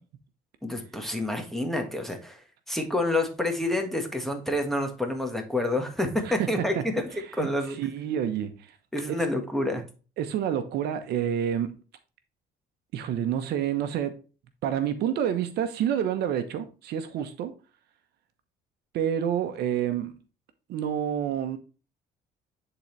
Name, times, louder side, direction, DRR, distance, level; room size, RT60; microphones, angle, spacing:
voice 1, 0.6-2.4 2.7-7.8 8.9-9.8, left 1 dB, ahead, 1.6 m, -28 dB
voice 2, 7.8-8.7 10.2-11.8 12.9-14.2 14.6-17.5 18.9-20.2 20.7-21.6, right 9 dB, 75° right, 1.0 m, -28 dB
9.9 x 4.0 x 3.3 m
cardioid pair, 110°, 17 cm